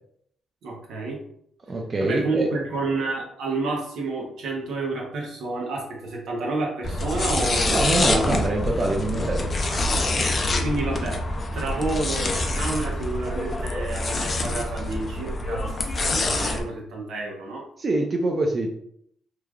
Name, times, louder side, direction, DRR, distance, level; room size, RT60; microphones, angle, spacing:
voice 1, 0.6-1.2 2.0-7.7 9.7-11.2 11.5-17.6, right 3 dB, 75° right, -1 dB, 0.8 m, -30 dB
voice 2, 1.7-2.5 7.6-9.5 17.8-18.7, right 2 dB, 45° right, 1 dB, 0.4 m, -24 dB
sound 1, 6.8-16.6, left 2 dB, 45° left, 0.5 m, -26 dB
3.1 x 2.4 x 2.3 m, 0.71 s
supercardioid pair, 60°, 0 cm